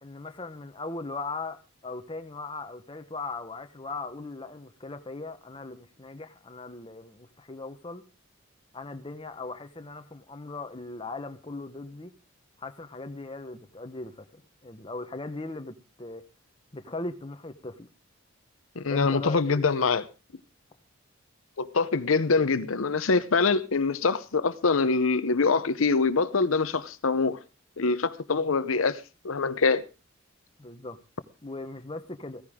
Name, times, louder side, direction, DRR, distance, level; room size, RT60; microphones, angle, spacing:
voice 1, 0.0-8.0 8.7-12.1 12.6-16.2 16.7-17.9 18.8-19.6 30.6-31.0 31.4-32.4, left 3 dB, 25° left, 1.1 m, -39 dB
voice 2, 18.8-20.1 21.6-27.4 27.8-29.8, left 4 dB, 80° left, 0.8 m, -24 dB
15.5 x 15.0 x 3.6 m
head